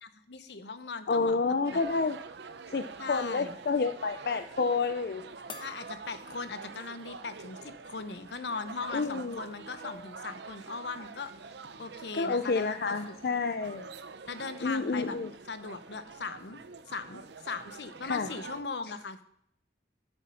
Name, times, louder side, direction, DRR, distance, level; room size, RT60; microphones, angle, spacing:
voice 1, 0.0-1.4 1.7-1.8 3.0-3.6 5.6-11.3 11.8-13.2 14.3-15.2 15.5-16.6 16.9-19.2, left 4 dB, 75° left, 11 dB, 0.9 m, -39 dB
voice 2, 1.1-2.2 2.7-5.2 8.9-9.4 12.1-13.9 14.6-15.3 18.0-18.3, left 4 dB, 60° left, 9 dB, 0.5 m, -29 dB
sound 1, 1.6-18.6, right 4 dB, 80° right, 0.6 m, -46 dB
sound 2, 5.5-7.1 7.5-7.6 9.1-9.2 9.6-10.2, left 2 dB, 25° left, 1.0 m, -49 dB
10.5 x 8.2 x 5.6 m, 0.70 s
head